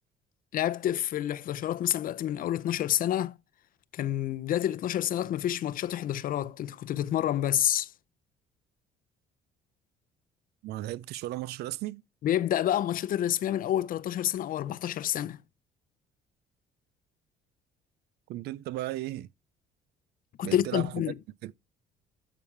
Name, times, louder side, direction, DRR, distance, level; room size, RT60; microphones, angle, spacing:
voice 1, 0.5-3.3 3.9-7.9 12.2-15.4 20.4-21.1, left 11 dB, 55° left, 0.6 m, -28 dB
voice 2, 10.6-12.0 18.3-19.3 20.4-21.0 21.4-21.5, right 15 dB, 75° right, 0.5 m, -35 dB
12.5 x 5.0 x 3.2 m
cardioid pair, 110°, 17 cm